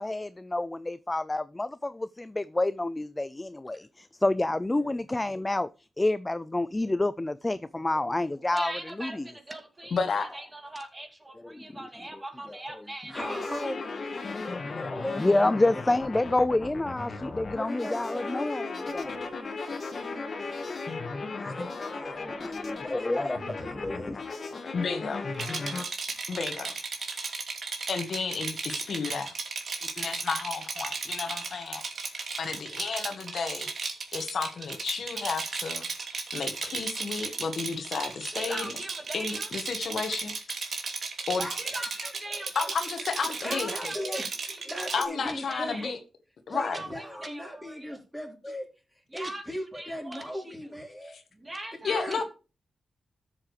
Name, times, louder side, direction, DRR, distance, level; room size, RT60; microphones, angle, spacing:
voice 1, 0.0-5.7 6.0-9.3 11.4-11.6 12.1-12.2 12.5-12.8 14.3-19.1 22.1-23.4 23.8-24.2, left 2 dB, 15° left, 0.4 m, -29 dB
voice 2, 8.5-13.4 38.2-39.5 41.5-42.8 43.4-44.6 44.9-45.9 46.6-48.0 49.1-50.5 51.4-52.2, right 1 dB, 20° right, 2.5 m, -41 dB
voice 3, 9.9-10.3 24.7-25.3 26.3-26.7 27.9-29.3 30.0-31.8 32.4-33.7 34.1-35.8 36.3-38.8 39.1-40.3 41.3-41.5 42.5-43.9 44.9-46.0 46.5-46.8 51.8-52.2, left 5 dB, 65° left, 1.6 m, -32 dB
sound 1, 13.1-25.8, left 3 dB, 50° left, 1.9 m, -36 dB
voice 4, 13.1-16.4 17.6-20.5 21.4-24.3 41.4-42.7 43.2-45.9 46.5-48.7 49.1-51.2 51.9-52.2, equal, ahead, 4.2 m, -39 dB
Rattle, 25.3-45.0, right 4 dB, 60° right, 2.7 m, -35 dB
13.0 x 7.5 x 3.2 m
wide cardioid pair, 100°, 0 cm